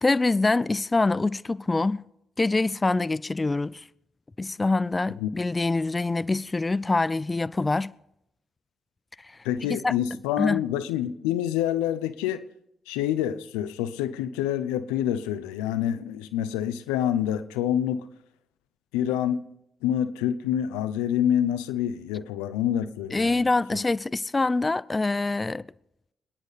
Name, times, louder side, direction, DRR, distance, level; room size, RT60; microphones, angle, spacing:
voice 1, 0.0-2.0 2.4-3.9 4.4-7.9 9.7-9.9 10.4-10.6 23.1-25.7, left 3 dB, 30° left, 0.4 m, -25 dB
voice 2, 9.4-12.5 12.9-18.1 18.9-19.4 19.8-23.8, left 10 dB, 85° left, 0.6 m, -27 dB
26.5 x 10.5 x 4.1 m
hypercardioid pair, 45°, 0 cm